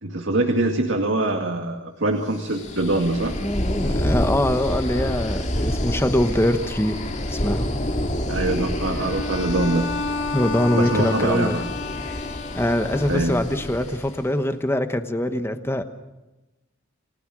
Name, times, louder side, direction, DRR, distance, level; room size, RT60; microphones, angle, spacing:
voice 1, 0.0-3.3 8.3-9.9 10.7-11.6 13.1-13.3, right 2 dB, 75° right, 3 dB, 2.2 m, -23 dB
sound 1, 2.4-14.2, left 1 dB, 35° left, 2.4 m, -28 dB
voice 2, 3.4-7.7 9.0-9.1 10.3-11.6 12.0-12.2 12.5-15.8, left 1 dB, 10° left, 9 dB, 1.2 m, -23 dB
Bowed string instrument, 9.0-13.6, left 4 dB, 65° left, 2.9 m, -31 dB
29.0 x 20.0 x 6.3 m, 1.0 s
head